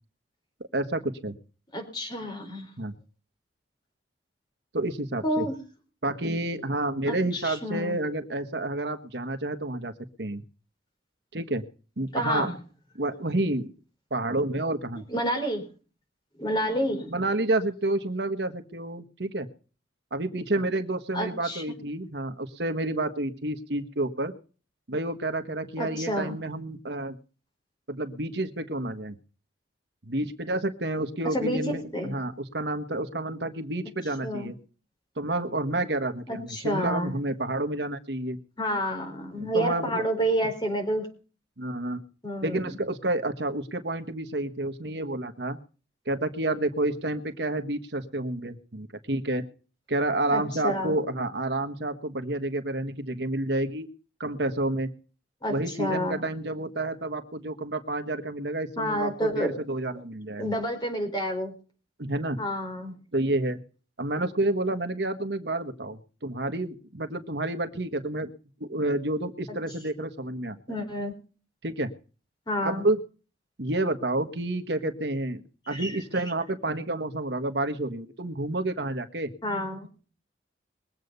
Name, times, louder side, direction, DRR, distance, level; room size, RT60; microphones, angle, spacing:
voice 1, 0.7-1.3 2.8-3.0 4.7-5.5 6.0-9.9 10.2-10.4 11.3-11.6 12.0-12.5 13.0-13.7 14.1-15.0 17.1-19.5 20.1-24.4 24.9-27.2 27.9-29.1 30.0-34.5 35.2-38.4 39.4-40.0 41.6-42.0 42.4-45.6 46.1-49.4 49.9-53.9 54.2-54.9 55.5-60.5 62.0-62.4 63.1-63.6 64.0-68.3 68.6-70.6 71.6-71.9 72.6-73.0 73.6-79.3, right 2 dB, 70° right, 8 dB, 1.4 m, -29 dB
voice 2, 1.7-2.7 5.2-5.6 7.1-8.0 12.1-12.5 15.1-15.6 16.4-17.1 21.1-21.6 25.8-26.4 31.2-32.2 34.2-34.5 36.3-37.1 38.6-41.1 42.2-42.8 50.3-51.0 55.4-56.2 58.8-59.6 60.4-61.6 62.4-62.9 70.7-71.1 72.5-72.8 75.7-76.0 79.4-79.9, equal, 25° left, 4 dB, 4.4 m, -29 dB
22.0 x 8.1 x 5.4 m, 0.37 s
head